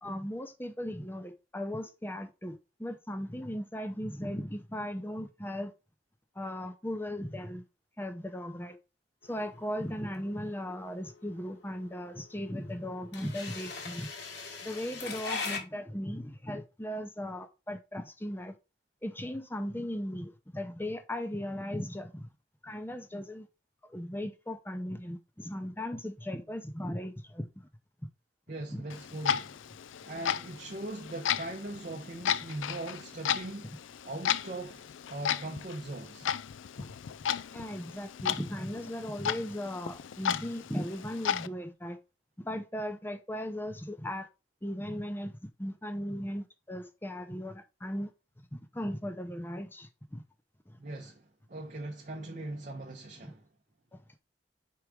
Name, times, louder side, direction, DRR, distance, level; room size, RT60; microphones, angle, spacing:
voice 1, 0.0-5.7 6.3-7.6 8.0-8.8 9.2-14.1 14.6-18.6 19.0-22.3 22.6-23.5 23.8-27.7 28.7-28.9 33.6-33.8 36.8-36.9 37.5-42.0 42.4-44.3 44.6-48.1 48.5-50.2 50.7-50.8 53.9-54.0, equal, 10° left, 0.7 m, -37 dB
sound 1, 9.3-15.6, left 4 dB, 60° left, 1.4 m, -40 dB
voice 2, 28.5-29.6 30.0-33.8 34.0-36.3 50.8-53.5, right 2 dB, 40° right, 0.7 m, -40 dB
Clock, 28.9-41.5, left 9 dB, 90° left, 0.4 m, -35 dB
4.8 x 4.7 x 4.9 m
head